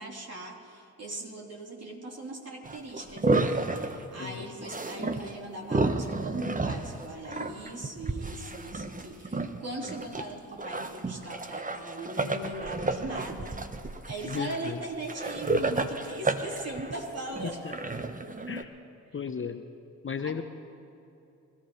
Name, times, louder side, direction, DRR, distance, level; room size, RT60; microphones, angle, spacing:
voice 1, 0.0-13.6 14.1-17.6 20.2-20.4, right 2 dB, 40° right, -2 dB, 3.9 m, -39 dB
sound 1, 2.6-4.0 4.6-5.3 5.6-10.2 10.5-18.6, right 3 dB, 20° right, 1.2 m, -31 dB
voice 2, 14.3-14.8 18.5-18.7 19.1-19.6 20.0-20.4, left 6 dB, 35° left, 9 dB, 0.9 m, -34 dB
25.5 x 14.0 x 3.2 m, 2.8 s
hypercardioid pair, 45°, 38 cm